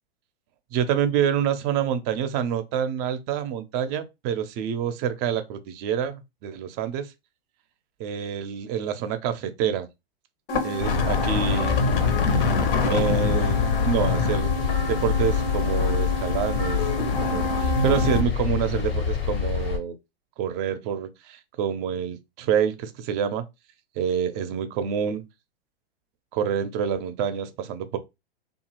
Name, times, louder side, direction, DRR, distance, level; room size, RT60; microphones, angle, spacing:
voice 1, 0.7-7.1 8.0-9.9 10.6-11.8 12.9-14.5 14.9-20.0 20.4-23.4 24.0-25.2 26.3-28.0, right 8 dB, 35° right, 0.5 m, -27 dB
sound 1, 10.5-18.2, left 3 dB, 65° left, 0.8 m, -26 dB
sound 2, 10.8-19.8, left 6 dB, 85° left, 1.2 m, -26 dB
2.7 x 2.4 x 2.9 m
hypercardioid pair, 110°, 30 cm